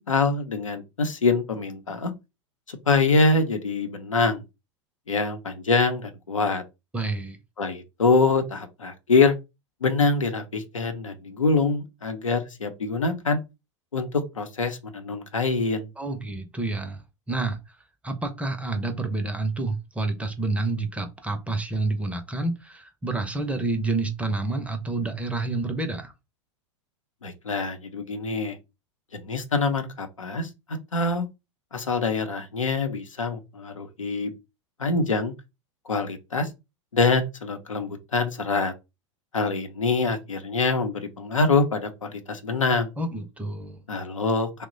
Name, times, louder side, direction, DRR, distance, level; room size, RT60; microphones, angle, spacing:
voice 1, 0.0-2.1 2.7-4.4 5.1-6.6 7.6-9.3 9.8-13.4 13.9-15.9 27.2-28.6 29.1-31.2 31.7-34.3 34.8-35.3 35.9-36.5 36.9-38.7 39.3-42.9 43.9-44.7, left 3 dB, 85° left, 0.7 m, -25 dB
voice 2, 6.9-7.4 16.0-17.0 17.3-17.6 18.0-26.1 43.0-43.8, right 2 dB, 10° right, 0.6 m, -28 dB
3.1 x 2.1 x 3.8 m
figure-of-eight pair, 90°, 16 cm